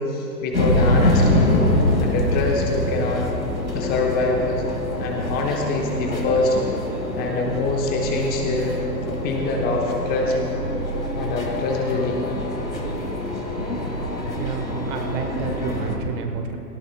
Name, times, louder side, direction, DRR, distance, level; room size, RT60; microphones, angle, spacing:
voice 1, 0.0-1.6 2.0-3.3 3.7-4.7 5.0-6.6 7.2-8.8 9.1-10.4 11.1-12.3, left 3 dB, 20° left, 0 dB, 1.0 m, -24 dB
sound 1, 0.5-16.0, left 1 dB, 85° left, 2.3 m, -24 dB
voice 2, 14.4-16.6, right 6 dB, 30° right, 5 dB, 1.2 m, -30 dB
18.5 x 18.0 x 2.2 m, 2.9 s
figure-of-eight pair, 115°, 49 cm